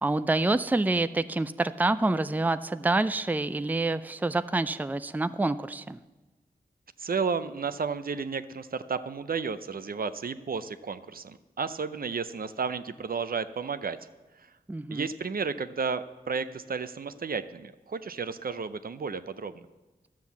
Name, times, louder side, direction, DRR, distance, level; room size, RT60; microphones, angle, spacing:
voice 1, 0.0-6.0 14.7-15.1, right 2 dB, 10° right, 13 dB, 0.4 m, -27 dB
voice 2, 7.0-14.0 14.9-19.7, right 5 dB, 65° right, 12 dB, 0.6 m, -32 dB
12.0 x 7.6 x 7.1 m, 1.2 s
cardioid pair, 50°, 16 cm